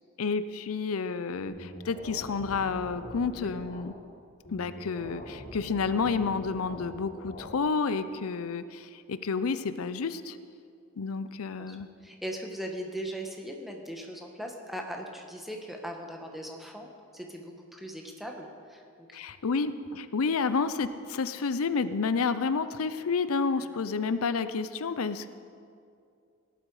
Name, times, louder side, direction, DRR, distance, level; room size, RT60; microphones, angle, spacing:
voice 1, 0.2-3.9 4.5-10.4 11.0-11.9 19.1-25.3, left 5 dB, 90° left, 12 dB, 0.6 m, -30 dB
sound 1, 1.5-3.8 4.4-7.5, equal, 45° left, 4.1 m, -44 dB
voice 2, 11.6-18.8 19.1-19.2 23.6-23.7, equal, ahead, 1 dB, 1.3 m, -39 dB
17.0 x 11.5 x 4.8 m, 2.4 s
head